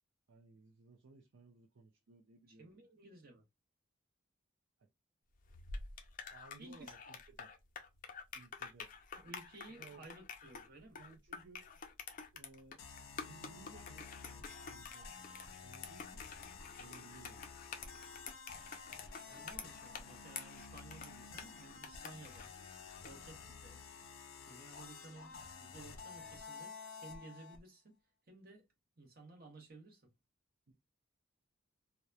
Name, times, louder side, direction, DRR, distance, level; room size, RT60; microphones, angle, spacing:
voice 1, 0.3-2.9 4.8-4.9 6.3-7.5 8.3-8.9 9.8-10.1 10.9-11.8 12.3-12.8 13.1-16.2 16.8-17.5 30.7-30.8, right 4 dB, 65° right, 0.5 m, -60 dB
voice 2, 2.5-3.4 6.6-6.9 9.1-11.0 19.3-22.5 23.0-23.8 24.4-28.0 28.3-28.7 29.0-30.1, right 2 dB, 45° right, 0.9 m, -56 dB
sound 1, 5.4-23.2, left 5 dB, 40° left, 0.4 m, -49 dB
sound 2, 12.8-27.6, left 5 dB, 90° left, 0.5 m, -51 dB
2.8 x 2.1 x 2.2 m
head